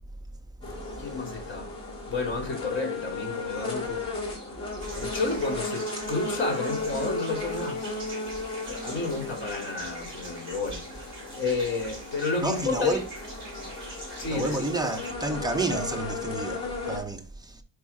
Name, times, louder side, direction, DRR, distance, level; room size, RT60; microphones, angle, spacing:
sound 1, 0.6-17.0, left 2 dB, 10° left, 2.6 m, -35 dB
voice 1, 1.0-1.7 2.1-4.1 4.9-7.9 8.7-13.0 14.2-14.7, left 4 dB, 25° left, 2.8 m, -31 dB
sound 2, 4.8-15.1, right 2 dB, 25° right, 3.6 m, -44 dB
voice 2, 12.4-13.0 14.3-17.6, right 2 dB, 10° right, 0.7 m, -30 dB
4.9 x 4.7 x 4.1 m
cardioid pair, 135°, 43 cm